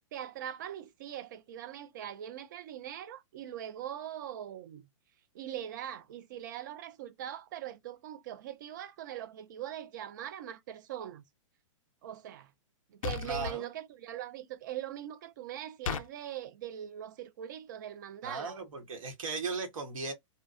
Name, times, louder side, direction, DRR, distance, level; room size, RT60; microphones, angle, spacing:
voice 1, 0.1-4.9 5.3-11.2 12.0-12.5 12.9-18.6, right 11 dB, 35° right, 0.4 m, -41 dB
sound 1, 13.0-13.6 15.9-16.1, left 6 dB, 80° left, 0.4 m, -34 dB
voice 2, 13.2-13.7 18.2-20.1, right 4 dB, 80° right, 1.1 m, -37 dB
2.6 x 2.2 x 2.3 m
hypercardioid pair, 170°, 17 cm